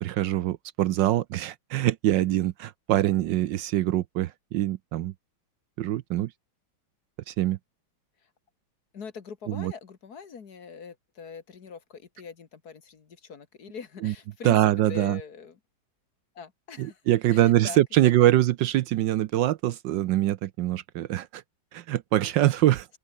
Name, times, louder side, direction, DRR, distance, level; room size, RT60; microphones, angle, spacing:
voice 1, 0.0-5.1 5.8-6.3 7.3-7.6 9.5-9.7 14.0-14.1 14.4-15.2 16.8-21.4 21.7-22.9, right 14 dB, 70° right, 1.2 m, -24 dB
voice 2, 8.9-15.6 16.4-17.0 17.3-18.4, left 6 dB, 50° left, 2.0 m, -43 dB
open air
omnidirectional pair, 2.2 m